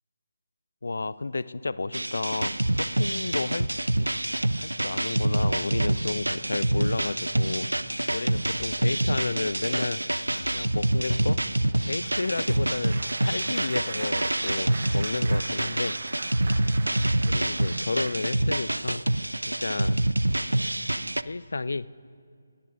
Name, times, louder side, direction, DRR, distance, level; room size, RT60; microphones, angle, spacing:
voice 1, 0.8-3.7 4.0-4.1 4.6-7.7 8.1-10.0 10.5-11.4 11.8-16.0 17.2-19.0 19.5-20.0 20.4-20.7 21.2-21.9, left 3 dB, 60° left, 18 dB, 0.4 m, -32 dB
sound 1, 1.9-21.2, right 1 dB, 80° right, 0.5 m, -26 dB
sound 2, 8.1-8.7 9.0-9.3 9.9-10.6 10.8-11.2, left 2 dB, 45° left, 2.5 m, -47 dB
Applause, 10.6-18.6 19.2-19.4 19.7-19.9, right 4 dB, 50° right, 0.8 m, -42 dB
30.0 x 16.5 x 2.5 m, 2.3 s
figure-of-eight pair, 150°, 0 cm